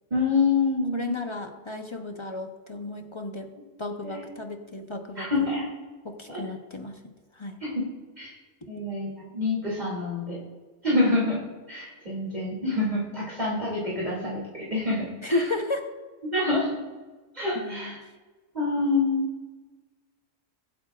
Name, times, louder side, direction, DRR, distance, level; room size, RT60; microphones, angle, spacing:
voice 1, 0.1-1.2 4.0-4.2 5.2-5.6 6.3-6.4 7.6-7.8 8.2-8.3 8.7-10.4 10.8-11.4 11.7-15.4 16.2-16.8 17.3-18.0 18.5-19.2, left 3 dB, 35° right, -7 dB, 2.8 m, -26 dB
voice 2, 0.9-3.5 3.8-5.5 6.0-6.9 7.4-7.6 15.2-15.9 17.5-18.0, left 2 dB, 30° left, 5 dB, 0.7 m, -33 dB
23.0 x 8.5 x 2.4 m, 1.3 s
omnidirectional pair, 1.3 m